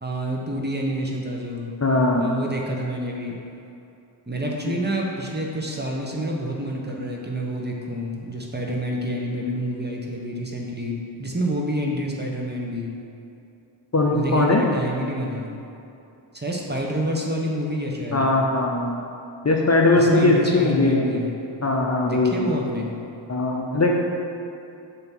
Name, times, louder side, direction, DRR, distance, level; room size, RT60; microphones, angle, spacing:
voice 1, 0.0-1.7 2.2-3.4 4.3-12.9 14.1-15.6 16.3-18.3 20.0-21.4 22.0-23.0, right 1 dB, 20° right, -1 dB, 1.2 m, -28 dB
voice 2, 1.8-2.4 13.9-14.6 18.1-19.0 19.4-21.1 21.6-22.5 23.3-23.9, left 2 dB, 30° left, -1 dB, 0.8 m, -20 dB
7.4 x 3.0 x 6.1 m, 2.8 s
cardioid pair, 40°, 50 cm